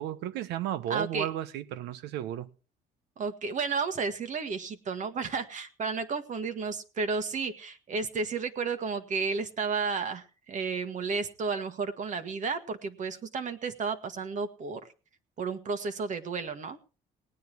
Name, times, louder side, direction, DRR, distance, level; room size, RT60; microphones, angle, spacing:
voice 1, 0.0-2.5, right 12 dB, 90° right, 1.1 m, -33 dB
voice 2, 0.9-1.3 3.2-14.8 15.4-16.8, right 4 dB, 45° right, 1.8 m, -32 dB
18.5 x 9.5 x 4.7 m
cardioid pair, 110°, 17 cm